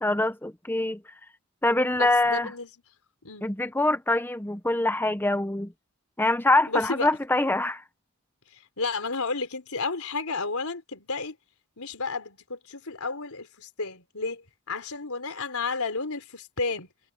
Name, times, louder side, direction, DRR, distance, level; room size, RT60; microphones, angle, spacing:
voice 1, 0.0-1.0 1.6-2.5 3.4-5.7 6.2-7.8, left 2 dB, 10° left, 0.8 m, -24 dB
voice 2, 1.9-2.7 3.2-3.5 6.7-7.1 8.5-11.4 11.8-16.9, left 4 dB, 90° left, 4.1 m, -32 dB
head